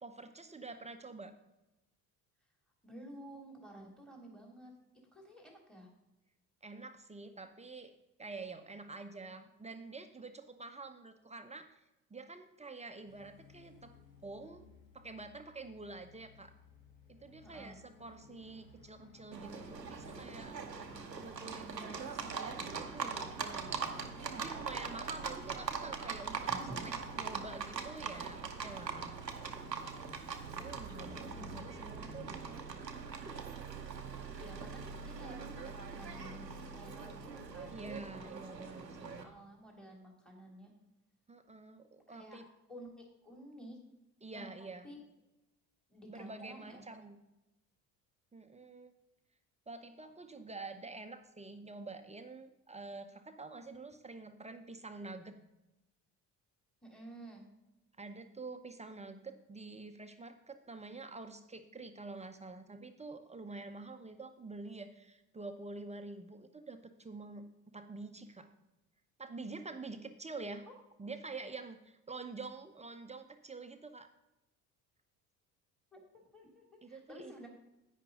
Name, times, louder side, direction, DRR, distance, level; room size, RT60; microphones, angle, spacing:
voice 1, 0.0-1.3 6.6-11.8 12.1-13.9 14.2-14.7 14.9-16.5 17.1-23.3 24.3-26.5 26.8-29.2 30.6-32.6 33.2-33.6 37.7-39.3 41.3-42.4 44.2-44.9 46.1-47.2 48.3-48.9 49.7-55.4 58.0-67.5 67.7-68.5 69.2-70.7 71.0-74.1 76.8-77.5, right 3 dB, 15° right, 7 dB, 0.9 m, -47 dB
voice 2, 2.8-4.7 5.1-5.9 17.4-17.8 26.5-27.1 31.1-31.5 34.4-37.8 39.2-40.7 42.1-42.4 42.7-43.8 44.3-44.5 44.8-45.0 45.9-46.8 56.8-57.4 75.9-77.5, right 1 dB, ahead, 0 dB, 2.7 m, -52 dB
sound 1, 13.0-21.1, left 4 dB, 75° left, 1.6 m, -60 dB
Livestock farm animals working animals, 19.3-39.2, right 5 dB, 90° right, 0.8 m, -42 dB
10.5 x 9.3 x 3.8 m, 0.93 s
figure-of-eight pair, 55°, 48 cm